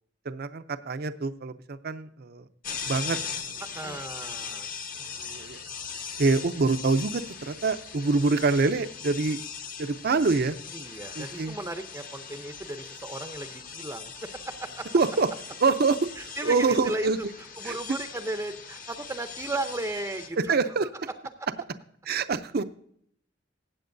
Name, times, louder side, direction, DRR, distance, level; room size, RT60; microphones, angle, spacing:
voice 1, 0.3-2.4 2.9-3.2 5.3-5.6 6.2-9.4 9.8-10.6 11.2-11.5 14.9-15.3 15.6-16.0 16.4-17.2 17.6-17.7 20.4-20.9 22.1-22.6, right 4 dB, 55° right, 11 dB, 0.5 m, -25 dB
sound 1, 2.6-20.3, left 6 dB, 50° left, 1.1 m, -40 dB
voice 2, 3.7-4.7 10.7-14.9 16.2-20.7 21.4-21.5, right 2 dB, 15° right, 7 dB, 0.6 m, -36 dB
15.5 x 8.5 x 2.6 m, 0.66 s
head